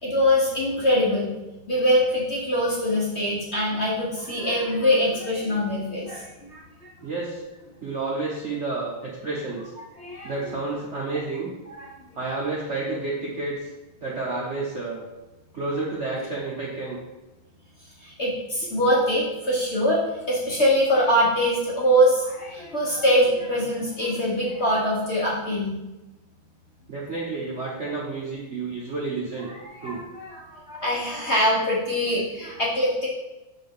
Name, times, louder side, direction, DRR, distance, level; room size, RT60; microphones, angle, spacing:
voice 1, 0.0-1.3 1.7-6.9 10.0-10.3 11.7-11.9 18.0-20.0 20.3-25.7 29.8-33.1, equal, 40° left, -5 dB, 1.1 m, -23 dB
voice 2, 7.0-7.4 7.8-9.6 10.2-11.5 12.1-13.7 14.0-15.0 15.5-17.0 26.9-29.5 29.8-30.0, right 3 dB, 55° right, -4 dB, 0.8 m, -30 dB
5.9 x 4.6 x 3.6 m, 1.0 s
omnidirectional pair, 2.2 m